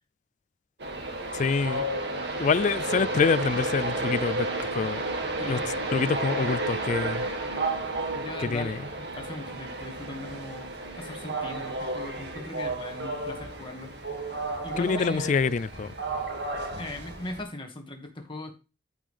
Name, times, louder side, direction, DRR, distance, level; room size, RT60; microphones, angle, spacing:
Train, 0.8-17.4, right 2 dB, 70° right, 2.0 m, -32 dB
voice 1, 1.3-1.8 2.4-4.5 4.7-5.0 5.5-5.6 5.9-7.2 8.5-8.8 14.8-15.9, left 5 dB, 45° left, 0.3 m, -26 dB
voice 2, 5.4-5.8 8.1-10.7 11.0-13.9 14.6-15.4 16.8-18.6, left 1 dB, 30° left, 1.8 m, -39 dB
14.0 x 5.5 x 3.4 m
head